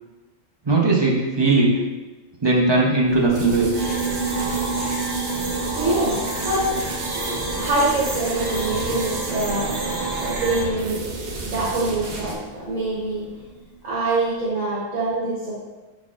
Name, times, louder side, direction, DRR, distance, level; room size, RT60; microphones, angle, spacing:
voice 1, 0.7-1.7 2.4-3.7, right 3 dB, 30° right, -3 dB, 0.5 m, -19 dB
Piano, 3.1-13.8, right 5 dB, 70° left, 0.4 m, -32 dB
sound 1, 3.3-12.4, right 2 dB, 50° right, 0.8 m, -32 dB
sound 2, 3.7-10.6, right 2 dB, 90° right, 1.3 m, -30 dB
voice 2, 5.4-9.8 10.2-13.4 13.8-15.6, right 2 dB, 75° right, -9 dB, 1.5 m, -25 dB
5.4 x 4.1 x 2.4 m, 1.2 s
omnidirectional pair, 1.4 m